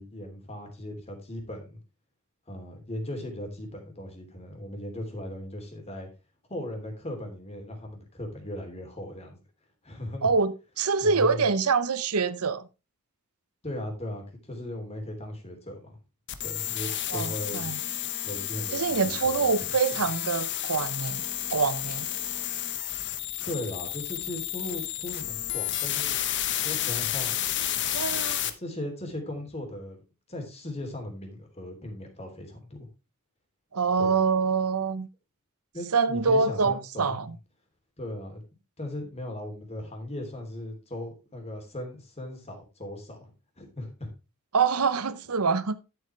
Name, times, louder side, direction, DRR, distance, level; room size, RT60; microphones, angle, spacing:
voice 1, 0.0-1.8 2.5-6.1 6.5-9.4 9.8-10.3 11.0-11.4 13.6-16.0 16.4-17.6 18.2-19.5 23.4-26.1 26.6-27.4 28.1-30.0 30.3-32.9 34.0-34.1 35.7-37.2 38.0-38.4 38.8-44.1, left 1 dB, 30° left, 3.1 m, -38 dB
voice 2, 10.2-12.6 17.1-17.8 18.7-21.2 21.5-22.1 27.9-28.4 33.7-35.1 35.9-37.3 44.5-45.8, right 5 dB, 85° right, 0.8 m, -25 dB
sound 1, 16.3-28.5, left 12 dB, 55° left, 1.1 m, -31 dB
11.5 x 7.9 x 3.2 m
head